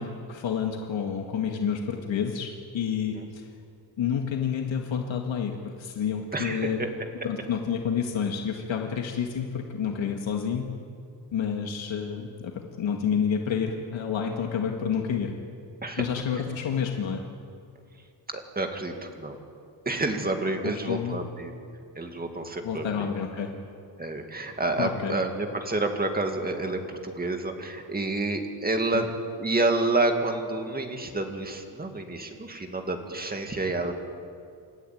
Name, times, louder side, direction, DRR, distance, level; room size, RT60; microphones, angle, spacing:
voice 1, 0.0-3.5 4.0-6.8 7.2-10.7 11.3-15.3 16.0-17.2 20.6-21.2 22.6-23.5 24.8-25.2 28.9-29.0, left 7 dB, 80° left, 2 dB, 2.0 m, -29 dB
voice 2, 6.3-6.7 15.8-16.0 18.3-19.4 19.9-21.5 22.0-23.1 24.0-29.1 29.4-33.9, right 2 dB, 20° right, 4 dB, 2.2 m, -29 dB
28.0 x 13.5 x 9.3 m, 2.4 s
wide cardioid pair, 165°, 45 cm